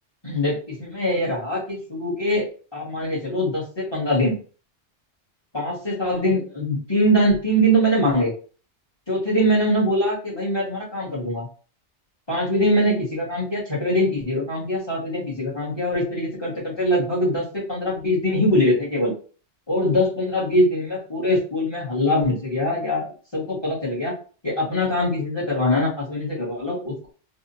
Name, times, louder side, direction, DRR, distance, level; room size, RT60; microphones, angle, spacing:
voice 1, 0.2-2.4 2.7-4.3 5.5-8.3 9.1-11.5 12.3-19.1 19.7-23.0 23.3-24.2 24.4-27.1, equal, 20° left, -7 dB, 1.6 m, -22 dB
3.6 x 2.5 x 2.8 m, 0.39 s
omnidirectional pair, 1.2 m